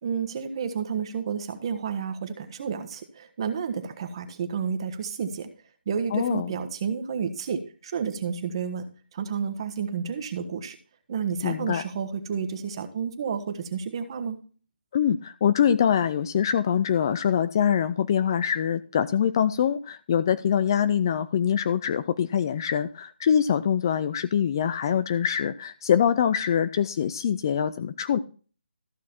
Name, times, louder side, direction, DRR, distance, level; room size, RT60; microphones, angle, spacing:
voice 1, 0.0-5.5 5.9-10.8 11.1-14.4, right 6 dB, 30° right, 9 dB, 1.3 m, -31 dB
voice 2, 6.1-6.5 11.4-11.8 14.9-28.2, left 8 dB, 25° left, 14 dB, 0.4 m, -24 dB
14.0 x 6.2 x 4.4 m, 0.39 s
hypercardioid pair, 170°, 6 cm